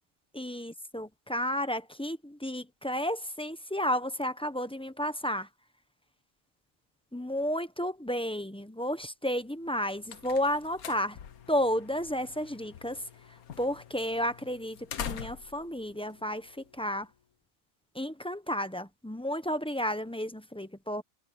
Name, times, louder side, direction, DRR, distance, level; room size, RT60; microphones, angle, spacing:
voice 1, 0.3-5.5 7.1-11.2 11.5-13.0 13.3-17.1 17.9-21.0, equal, 5° left, 0.7 m, -32 dB
sound 1, 9.6-17.1, left 8 dB, 85° left, 1.6 m, -45 dB
omnidirectional pair, 1.5 m